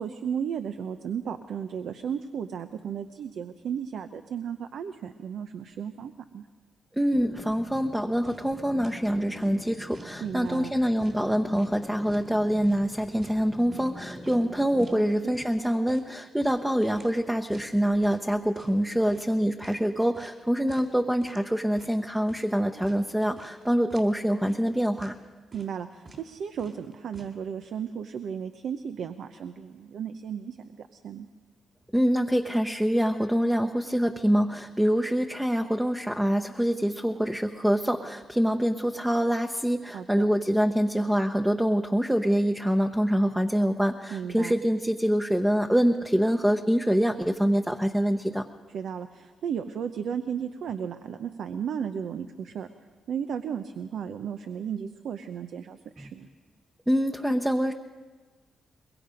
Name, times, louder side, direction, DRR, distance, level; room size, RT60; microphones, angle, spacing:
voice 1, 0.0-6.5 10.2-10.7 15.0-15.4 25.5-31.3 39.9-40.3 44.1-44.5 48.7-52.7 53.1-56.3, right 7 dB, 75° right, 8 dB, 0.7 m, -34 dB
voice 2, 7.0-25.1 31.9-48.4 56.9-57.7, equal, 5° right, 4 dB, 0.9 m, -25 dB
sound 1, 7.1-15.0, left 1 dB, 25° left, 1.0 m, -44 dB
sound 2, 7.7-7.9 8.2-8.5 8.8-9.1 9.3-10.1 10.4-10.7 11.0-11.8 12.1-12.3 12.6-14.0 14.3-14.4 14.8-15.0 15.3-15.5 15.9-17.2 17.5-17.7 18.0-18.3 18.5-18.8 19.1-19.8 20.1-20.4 20.7-20.9 21.2-21.5 21.8-22.5 22.8-23.0 23.4-23.6 23.9-24.1 24.4-24.7 25.0-25.2 25.5-25.8 26.0-26.3 26.6-27.3, right 2 dB, 40° right, 3.7 m, -50 dB
23.0 x 21.5 x 5.2 m, 1.4 s
cardioid pair, 75°, 0 cm